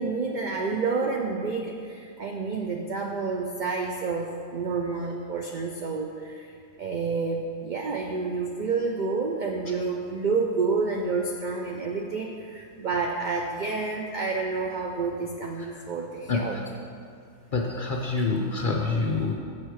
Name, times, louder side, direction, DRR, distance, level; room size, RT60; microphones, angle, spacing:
voice 1, 0.0-6.5 6.8-16.6, right 4 dB, 80° right, 1 dB, 0.4 m, -29 dB
voice 2, 16.3-16.6 17.5-19.3, left 3 dB, 55° left, 0 dB, 0.5 m, -27 dB
7.2 x 6.4 x 4.6 m, 2.4 s
omnidirectional pair, 1.5 m